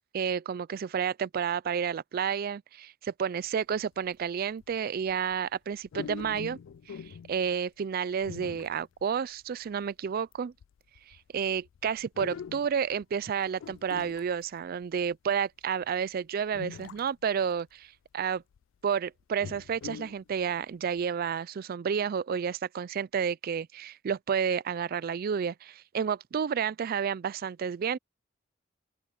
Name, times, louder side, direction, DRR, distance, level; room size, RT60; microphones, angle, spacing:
voice 1, 0.1-6.6 6.9-10.5 11.1-18.4 18.8-28.0, right 7 dB, 50° right, 0.4 m, -31 dB
sound 1, 3.7-3.8 4.6-4.8 5.1-5.3 5.9-7.5 8.2-9.0 9.5-9.6 10.3-10.4 10.6-13.3 13.6-15.1 15.9-16.0 16.5-17.3 17.6-17.7 18.3-18.6 19.2-20.2 20.6-20.7 21.0-21.1, left 7 dB, 75° left, 0.3 m, -43 dB
open air
head